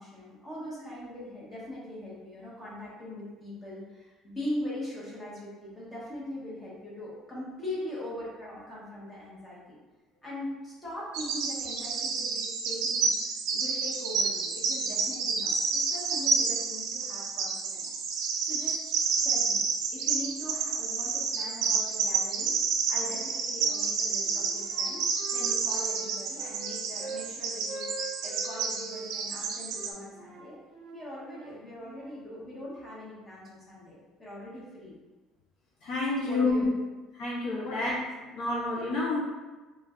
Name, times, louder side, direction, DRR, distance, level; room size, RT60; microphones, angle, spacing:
voice 1, 0.0-9.8 10.2-17.9 18.4-18.8 19.2-19.6 19.9-22.6 22.9-25.1 25.3-30.6 30.9-34.9 36.2-36.7 37.6-37.8, left 1 dB, 15° left, -7 dB, 1.0 m, -41 dB
Bird vocalization bird call bird song, 11.1-29.9, right 5 dB, 75° right, 0.4 m, -30 dB
Wind instrument woodwind instrument, 23.0-23.9 24.2-27.3 27.6-29.1 29.7-32.2, right 3 dB, 45° right, 0.7 m, -43 dB
voice 2, 35.8-36.7 37.1-37.9 38.3-39.2, left 3 dB, 50° left, -5 dB, 0.6 m, -28 dB
3.1 x 2.4 x 3.6 m, 1.2 s
cardioid pair, 180°, 0 cm